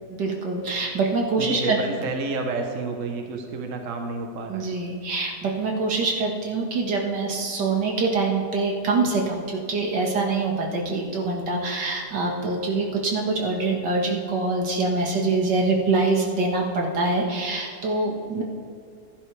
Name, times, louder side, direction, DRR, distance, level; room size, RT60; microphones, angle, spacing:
voice 1, 0.1-1.8 4.5-18.4, right 3 dB, 75° right, 0 dB, 2.2 m, -24 dB
voice 2, 1.4-4.7, right 3 dB, 50° right, 3 dB, 1.3 m, -30 dB
15.5 x 11.0 x 3.3 m, 2.4 s
omnidirectional pair, 1.9 m